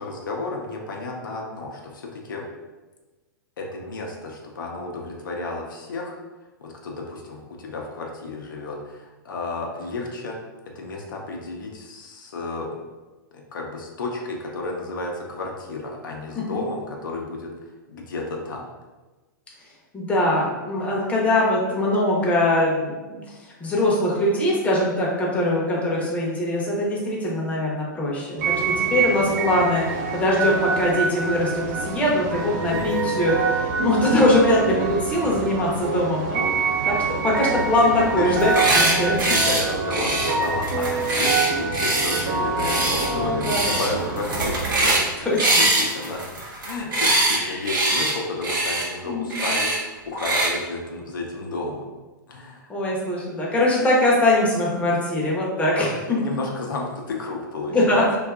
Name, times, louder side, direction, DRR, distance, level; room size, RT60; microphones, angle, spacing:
voice 1, 0.0-2.5 3.6-6.2 6.6-10.4 10.7-12.7 13.3-17.5 17.9-18.7 32.7-33.0 38.2-38.8 39.2-45.3 45.6-46.2 46.6-51.9 52.3-52.7 56.2-58.0, left 2 dB, 75° left, 0 dB, 0.5 m, -32 dB
voice 2, 19.9-23.2 23.6-36.5 36.8-36.9 37.2-39.2 43.1-43.8 45.3-45.5 47.4-47.6 49.0-49.5 52.7-56.2 57.7-58.2, left 1 dB, 10° left, -4 dB, 0.6 m, -22 dB
sound 1, 28.4-44.5, right 4 dB, 50° right, 0.4 m, -26 dB
sound 2, 38.4-38.9 39.2-39.6 39.9-42.2 42.6-43.1 43.4-43.9 44.2-45.1 45.4-47.4 47.6-48.1 48.4-48.9 49.3-49.8 50.2-50.5, right 2 dB, 70° right, 0.8 m, -22 dB
2.6 x 2.3 x 2.3 m, 1.2 s
hypercardioid pair, 115°, 11 cm